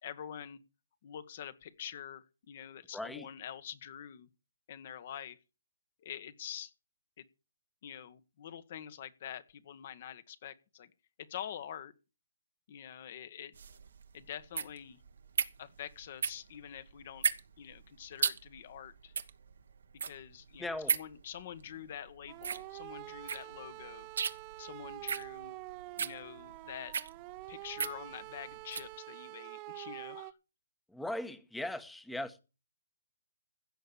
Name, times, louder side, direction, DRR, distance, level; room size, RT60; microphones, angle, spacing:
voice 1, 0.0-0.6 1.0-4.3 4.7-5.4 6.0-6.7 7.2-7.3 7.8-10.9 11.2-11.9 12.7-13.6 14.1-15.0 15.6-17.3 17.6-19.1 20.0-24.1 24.6-25.5 26.0-26.9 27.5-30.4, left 9 dB, 45° left, 1.5 m, -46 dB
voice 2, 2.9-3.3 20.6-20.9 30.9-32.4, left 1 dB, 5° left, 1.1 m, -38 dB
sound 1, 13.5-28.9, right 6 dB, 70° right, 1.3 m, -37 dB
sound 2, 22.3-30.3, right 21 dB, 25° right, 0.6 m, -47 dB
16.0 x 6.8 x 7.0 m
hypercardioid pair, 145°, 0 cm